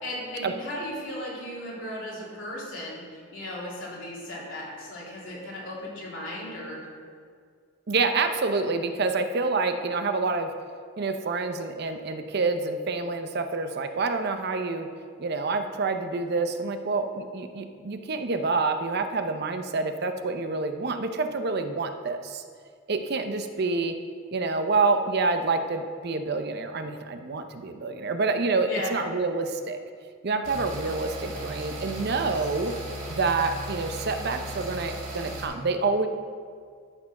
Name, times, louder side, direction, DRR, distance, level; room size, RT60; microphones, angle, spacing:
voice 1, 0.0-6.8 28.6-29.0, left 1 dB, 75° left, -5 dB, 2.7 m, -36 dB
voice 2, 7.9-10.5 11.0-14.9 15.2-22.4 22.9-23.9 24.3-29.8 30.2-32.7 33.1-36.1, right 3 dB, 55° right, 7 dB, 0.6 m, -27 dB
sound 1, 30.4-35.4, right 1 dB, 75° right, 2.5 m, -36 dB
12.5 x 4.6 x 5.9 m, 2.1 s
head